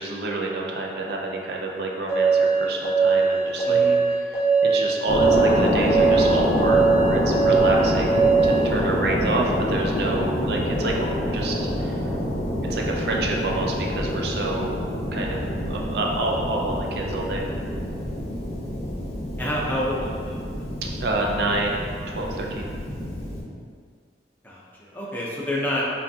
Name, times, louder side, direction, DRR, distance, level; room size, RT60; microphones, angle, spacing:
voice 1, 0.0-3.8 4.3-4.4 4.7-12.1 12.7-14.8 15.1-17.4 21.0-22.7, right 2 dB, 65° right, 0 dB, 0.5 m, -28 dB
sound 1, 2.1-8.6, right 5 dB, 15° right, 1.2 m, -20 dB
voice 2, 3.6-4.0 19.4-20.4 24.4-25.8, left 1 dB, 10° left, -6 dB, 0.6 m, -28 dB
sound 2, 5.1-23.4, equal, 40° left, 0.9 m, -26 dB
5.6 x 2.3 x 2.8 m, 2.1 s
head